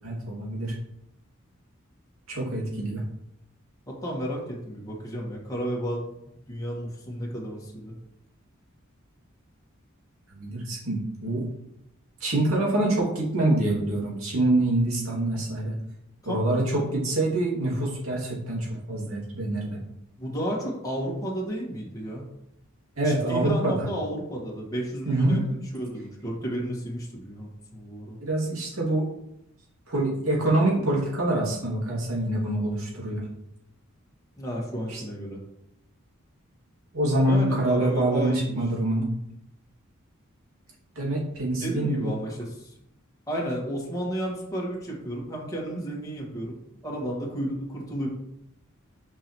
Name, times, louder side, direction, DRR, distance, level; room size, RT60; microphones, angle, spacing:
voice 1, 0.0-0.8 2.3-3.0 10.3-11.4 12.2-15.8 16.2-19.8 23.0-23.9 25.0-25.4 28.2-29.1 29.9-33.2 34.9-35.0 36.9-39.1 41.0-42.1, right 1 dB, 85° right, -4 dB, 2.4 m, -25 dB
voice 2, 3.9-7.9 16.2-16.5 20.2-22.2 23.0-28.2 34.4-35.4 37.2-38.6 41.6-42.7 43.3-46.5 46.8-48.1, equal, 15° left, -4 dB, 1.6 m, -32 dB
6.1 x 5.4 x 3.1 m, 0.79 s
head